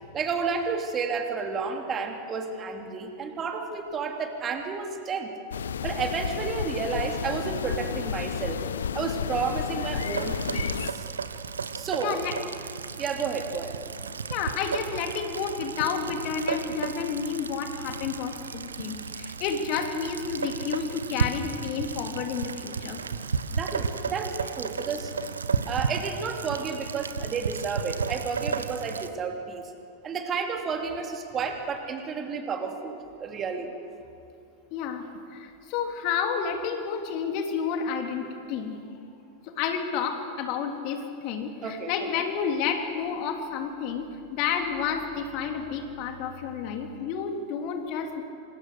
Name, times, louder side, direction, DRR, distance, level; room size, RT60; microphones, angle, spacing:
voice 1, 0.1-5.3 5.8-8.6 8.9-11.1 11.7-12.2 13.0-13.7 23.5-25.1 25.7-29.6 30.0-33.7 41.6-42.2, right 5 dB, 25° right, 4 dB, 3.0 m, -31 dB
sound 1, 5.5-10.9, left 7 dB, 65° left, 0.9 m, -31 dB
Rain, 9.9-29.1, right 5 dB, 70° right, 1.1 m, -33 dB
voice 2, 12.0-12.4 14.3-23.0 34.7-35.0 35.3-38.8 39.4-48.2, left 6 dB, 45° left, 4 dB, 3.2 m, -30 dB
27.0 x 27.0 x 6.7 m, 2.5 s
figure-of-eight pair, 90°, 0 cm